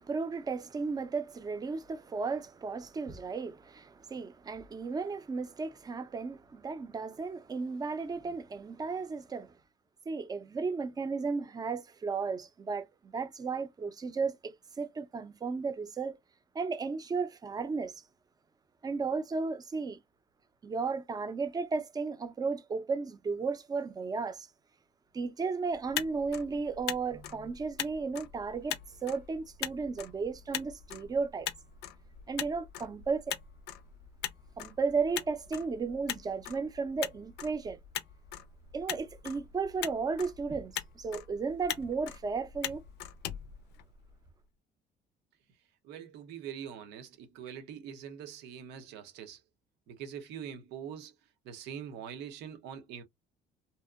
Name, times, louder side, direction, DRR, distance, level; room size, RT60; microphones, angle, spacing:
voice 1, 0.0-9.5 10.1-16.2 16.5-18.0 18.8-20.0 20.6-24.5 25.1-31.5 32.3-33.4 34.6-37.8 38.7-42.8, right 4 dB, 20° right, 0.5 m, -34 dB
Motor vehicle (road), 25.7-44.3, left 12 dB, 85° left, 0.4 m, -42 dB
voice 2, 45.8-49.4 49.9-51.2 51.4-53.0, right 8 dB, 90° right, 0.7 m, -43 dB
2.7 x 2.0 x 2.3 m
cardioid pair, 110°, 17 cm